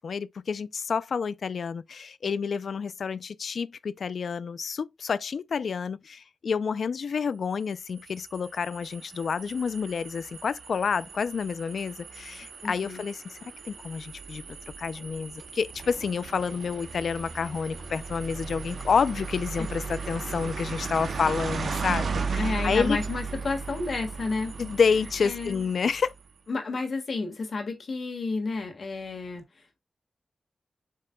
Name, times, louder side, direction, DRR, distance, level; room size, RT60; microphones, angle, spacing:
voice 1, 0.0-13.4 13.6-14.4 14.8-23.0 24.6-26.1, left 6 dB, 75° left, 0.5 m, -29 dB
sound 1, 7.7-26.2, right 5 dB, 75° right, 1.1 m, -36 dB
voice 2, 12.6-13.0 22.4-24.6 25.2-25.7 26.5-29.4, left 3 dB, 55° left, 1.7 m, -31 dB
7.6 x 5.5 x 2.3 m
wide cardioid pair, 140°, 0 cm